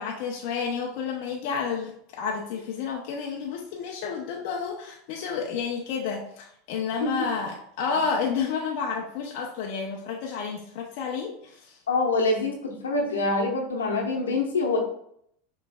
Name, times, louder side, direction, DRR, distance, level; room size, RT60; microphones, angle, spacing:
voice 1, 0.0-11.8, left 6 dB, 60° left, 0 dB, 0.6 m, -30 dB
voice 2, 11.9-14.8, left 3 dB, 90° left, 1 dB, 1.0 m, -25 dB
5.7 x 3.1 x 2.3 m, 0.69 s
hypercardioid pair, 95°, 0 cm